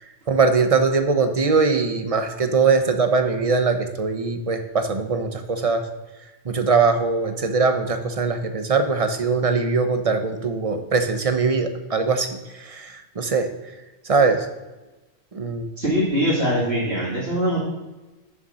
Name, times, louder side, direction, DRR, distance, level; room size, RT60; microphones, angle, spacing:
voice 1, 0.3-5.8 6.4-12.3 12.6-13.5 14.0-14.5 15.3-15.7, right 4 dB, 35° right, 7 dB, 0.9 m, -21 dB
voice 2, 15.8-17.6, equal, 70° right, -10 dB, 2.9 m, -22 dB
7.2 x 6.7 x 6.3 m, 1.1 s
omnidirectional pair, 1.1 m